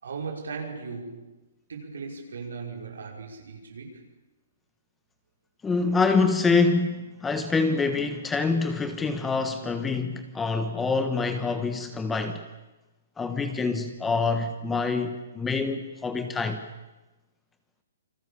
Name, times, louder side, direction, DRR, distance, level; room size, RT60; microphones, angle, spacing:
voice 1, 0.0-1.4 1.7-4.1, right 5 dB, 85° right, 5.7 m, -38 dB
voice 2, 5.6-12.4 13.2-16.6, left 4 dB, 10° left, 1.4 m, -26 dB
28.5 x 22.0 x 7.2 m
hypercardioid pair, 155°, 0 cm